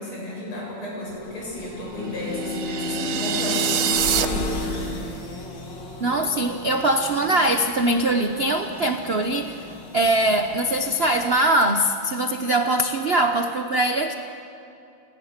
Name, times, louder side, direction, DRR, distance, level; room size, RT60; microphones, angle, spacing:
voice 1, 0.0-5.1, left 1 dB, 85° left, -4 dB, 9.0 m, -33 dB
sound 1, 1.1-11.4, left 2 dB, 55° left, 3.1 m, -38 dB
Bowed string instrument, 1.6-6.3, left 2 dB, 20° right, 7.8 m, -32 dB
sound 2, 2.2-4.3, right 10 dB, 75° right, 1.7 m, -25 dB
voice 2, 6.0-14.1, right 1 dB, 55° right, 6 dB, 0.6 m, -22 dB
29.0 x 20.0 x 6.6 m, 2.7 s
omnidirectional pair, 2.3 m